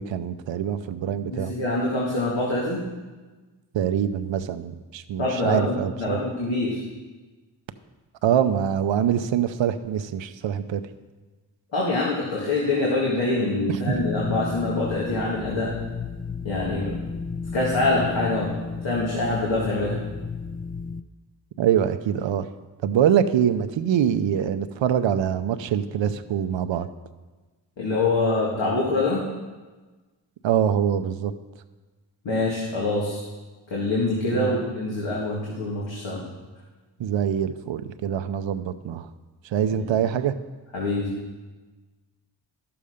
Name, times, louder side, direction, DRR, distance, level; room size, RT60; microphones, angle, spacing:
voice 1, 0.0-1.5 3.7-6.2 8.2-10.8 21.6-22.5 22.8-26.9 30.4-31.3 34.3-34.6 37.0-39.1 39.4-40.4, right 9 dB, 80° right, 10 dB, 0.6 m, -24 dB
voice 2, 1.3-2.8 5.2-6.8 11.7-15.7 16.4-17.0 17.5-18.5 18.8-20.0 27.8-29.2 32.2-33.2 33.7-36.2 39.8-39.9 40.7-41.1, left 2 dB, 75° left, -5 dB, 2.0 m, -25 dB
sound 1, 13.9-21.0, left 5 dB, 20° left, 0.4 m, -33 dB
11.5 x 7.0 x 5.0 m, 1.3 s
cardioid pair, 50°, 45 cm